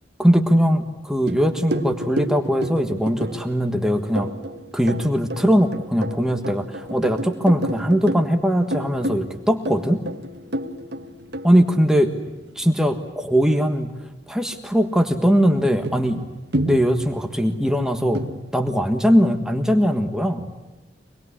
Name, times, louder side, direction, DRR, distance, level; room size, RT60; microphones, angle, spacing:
voice 1, 0.2-4.3 4.7-10.0 11.4-12.1 12.5-13.9 14.3-16.2 16.6-18.2 18.5-20.5, equal, 5° right, 5 dB, 1.5 m, -20 dB
sound 1, 1.3-12.5 15.4-15.5 15.8-17.6 18.1-18.5, right 1 dB, 60° right, 1.5 m, -31 dB
25.5 x 20.5 x 9.9 m, 1.1 s
head